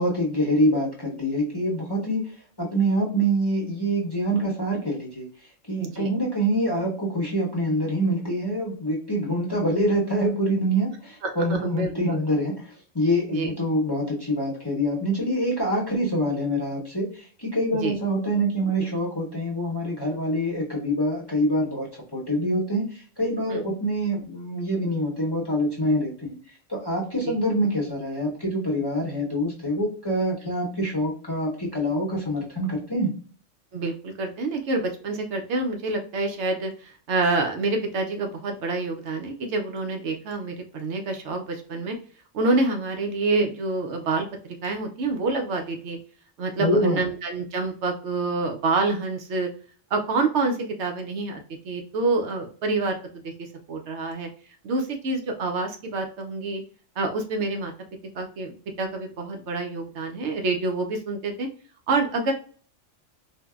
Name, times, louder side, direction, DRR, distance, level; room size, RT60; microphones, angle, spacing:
voice 1, 0.0-2.3 2.6-5.3 5.7-21.9 22.1-26.4 26.7-33.1 46.6-47.0, equal, 25° left, -4 dB, 0.7 m, -25 dB
voice 2, 5.8-6.1 11.2-12.2 13.3-13.5 17.8-17.9 23.5-23.6 27.2-27.4 33.7-42.0 42.3-46.0 46.4-49.5 49.9-54.3 54.6-56.6 57.0-57.7 58.1-61.5 61.9-62.3, right 3 dB, 70° right, 4 dB, 0.9 m, -27 dB
4.5 x 2.0 x 2.3 m, 0.43 s
omnidirectional pair, 1.3 m